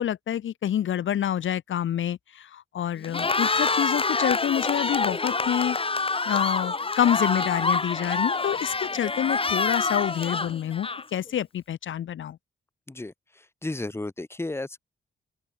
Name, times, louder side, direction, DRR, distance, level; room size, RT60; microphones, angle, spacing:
voice 1, 0.0-5.8 6.3-12.4, left 10 dB, 85° left, 1.5 m, -27 dB
Cheering, 3.0-11.3, left 3 dB, 30° left, 5.3 m, -26 dB
voice 2, 13.6-14.8, left 2 dB, 10° left, 1.8 m, -33 dB
open air
wide cardioid pair, 120°, 20 cm